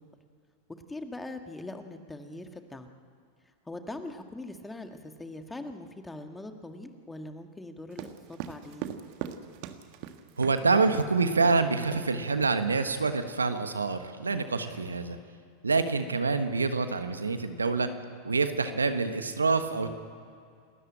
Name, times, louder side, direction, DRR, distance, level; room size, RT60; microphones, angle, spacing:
voice 1, 0.9-2.9 3.7-8.9, left 2 dB, 10° left, 6 dB, 1.8 m, -42 dB
sound 1, 7.9-10.6 10.9-11.1 11.4-11.6 11.9-12.1 12.4-13.0, right 10 dB, 55° right, 1.5 m, -40 dB
voice 2, 10.4-15.2 15.6-17.9 18.2-20.0, right 4 dB, 90° right, 9 dB, 1.3 m, -26 dB
28.5 x 13.0 x 8.8 m, 2.3 s
hypercardioid pair, 90°, 0 cm